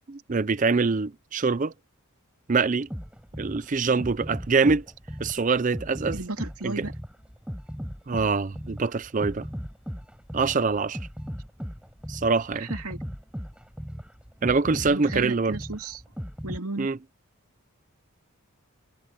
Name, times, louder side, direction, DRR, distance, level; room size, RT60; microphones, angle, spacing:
voice 1, 0.1-1.7 2.5-2.9 3.4-4.8 5.2-6.2 6.6-6.7 8.1-9.5 10.3-11.0 12.1-12.7 14.4-15.6 16.8-17.0, right 4 dB, 35° right, 0.5 m, -24 dB
sound 1, 2.9-16.6, equal, 5° right, 7.1 m, -37 dB
voice 2, 6.1-6.9 12.5-13.0 14.7-16.0 16.4-16.9, right 2 dB, 80° right, 2.7 m, -34 dB
head